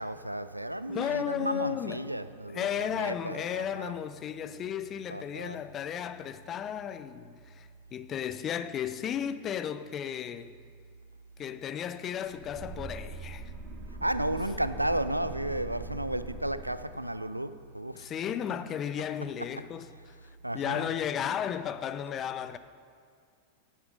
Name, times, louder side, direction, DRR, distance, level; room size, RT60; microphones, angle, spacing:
voice 1, 0.0-3.9 5.1-5.6 14.0-18.1 20.4-20.9, right 1 dB, 85° right, 0.3 m, -33 dB
voice 2, 0.9-2.1 2.5-10.5 11.4-13.5 18.0-19.9 20.5-22.6, left 9 dB, 30° left, 0.4 m, -34 dB
sound 1, 12.2-17.1, right 2 dB, 35° right, 1.4 m, -42 dB
10.0 x 8.8 x 5.1 m
figure-of-eight pair, 90°, 0 cm